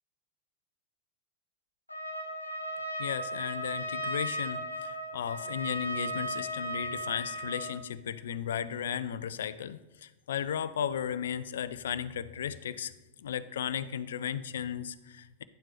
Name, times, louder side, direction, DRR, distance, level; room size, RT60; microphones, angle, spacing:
Trumpet, 1.9-7.8, equal, 85° left, 1.2 m, -36 dB
voice 1, 3.0-12.9 13.2-15.4, left 8 dB, 60° left, 15 dB, 0.4 m, -35 dB
10.5 x 7.3 x 3.3 m, 1.1 s
figure-of-eight pair, 90°, 0 cm